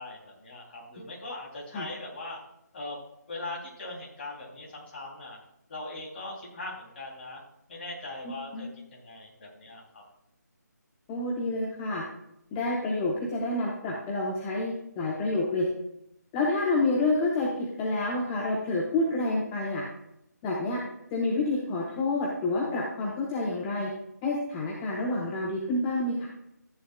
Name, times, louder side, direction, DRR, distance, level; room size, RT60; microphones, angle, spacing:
voice 1, 0.0-2.4 2.7-3.0 3.3-5.4 5.7-7.4 7.7-10.0, left 2 dB, 35° left, -2 dB, 3.4 m, -40 dB
voice 2, 11.1-12.0 12.5-15.7 16.3-19.8 20.4-20.8 21.1-23.9 24.2-26.3, left 2 dB, 15° left, -3 dB, 1.0 m, -28 dB
13.5 x 9.4 x 2.4 m, 0.81 s
figure-of-eight pair, 155°, 10 cm